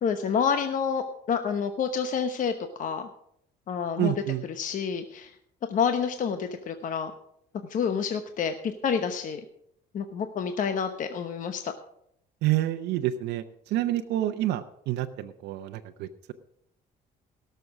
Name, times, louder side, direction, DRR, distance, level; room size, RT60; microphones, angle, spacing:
voice 1, 0.0-3.1 3.7-4.1 4.5-5.3 5.7-7.1 7.7-9.4 9.9-11.7, left 6 dB, 50° left, 7 dB, 1.0 m, -28 dB
voice 2, 4.0-4.4 12.4-16.3, right 14 dB, 85° right, 7 dB, 0.7 m, -28 dB
17.5 x 6.8 x 6.0 m, 0.72 s
cardioid pair, 110°, 17 cm